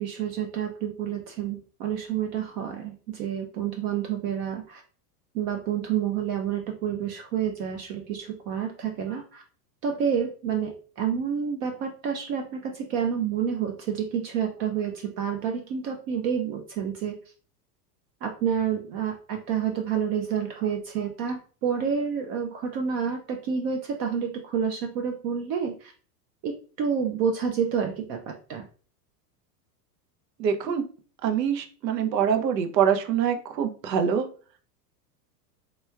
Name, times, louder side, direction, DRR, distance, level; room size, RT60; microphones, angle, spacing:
voice 1, 0.0-4.8 5.3-9.4 9.8-17.2 18.2-25.9 26.4-28.7, right 7 dB, 35° right, 3 dB, 0.4 m, -29 dB
voice 2, 30.4-30.8 31.2-34.3, right 8 dB, 80° right, 7 dB, 0.8 m, -24 dB
3.3 x 3.0 x 2.3 m, 0.40 s
hypercardioid pair, 110°, 49 cm